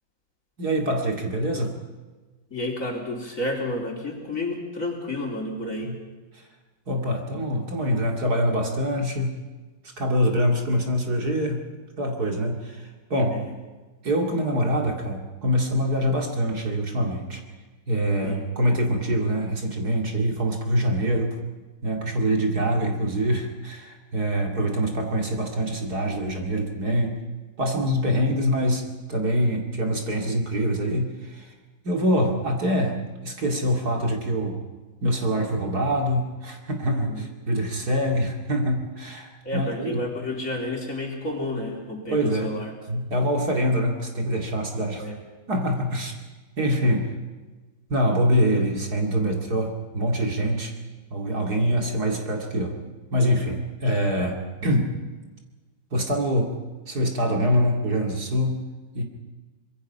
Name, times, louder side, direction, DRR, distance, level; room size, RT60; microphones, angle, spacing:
voice 1, 0.6-1.8 5.8-5.9 6.3-6.4 6.9-9.3 10.0-11.6 12.0-13.4 14.0-17.4 17.9-21.4 21.8-27.2 27.6-31.5 31.8-34.6 35.0-40.0 42.1-42.5 42.9-45.1 45.5-46.1 46.6-47.1 47.9-50.7 51.1-52.8 53.1-54.9 55.9-56.5 56.9-58.6 58.9-59.0, equal, 50° right, 2 dB, 2.9 m, -24 dB
voice 2, 2.5-5.9 13.3-13.5 18.2-18.5 37.1-37.3 39.4-42.7 45.0-45.2, left 1 dB, 40° left, 0 dB, 4.2 m, -31 dB
25.0 x 22.5 x 5.7 m, 1.3 s
omnidirectional pair, 2.2 m